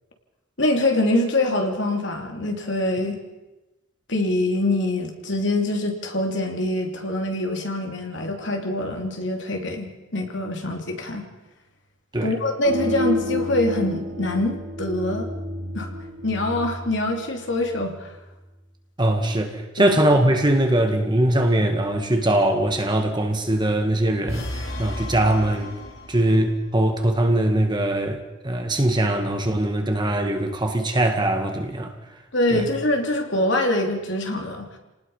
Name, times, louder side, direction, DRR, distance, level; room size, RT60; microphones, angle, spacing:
voice 1, 0.6-3.2 4.1-11.2 12.2-15.3 15.7-15.9 16.2-18.1 19.8-20.0 32.3-34.7, left 1 dB, 60° left, 3 dB, 3.2 m, -24 dB
sound 1, 12.6-18.0, left 2 dB, 70° right, 7.2 m, -30 dB
voice 2, 19.0-24.4 24.8-25.7 26.1-31.9 32.5-32.6, right 1 dB, 20° right, 4 dB, 2.0 m, -21 dB
sound 2, 24.3-26.5, left 1 dB, 85° left, 4.9 m, -33 dB
29.5 x 19.0 x 5.7 m, 1.0 s
head